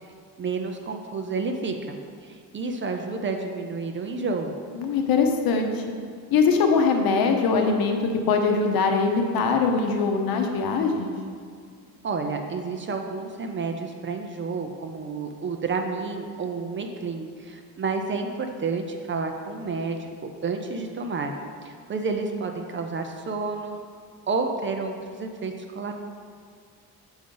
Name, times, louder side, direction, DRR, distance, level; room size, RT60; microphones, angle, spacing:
voice 1, 0.4-2.0 2.2-4.6 12.0-20.1 20.4-21.3 21.6-23.8 24.3-26.0, right 4 dB, 35° right, 4 dB, 0.4 m, -30 dB
voice 2, 4.8-5.8 6.3-8.0 8.3-11.1, left 4 dB, 70° left, 4 dB, 0.8 m, -22 dB
7.0 x 5.0 x 3.8 m, 2.2 s
cardioid pair, 165°, 37 cm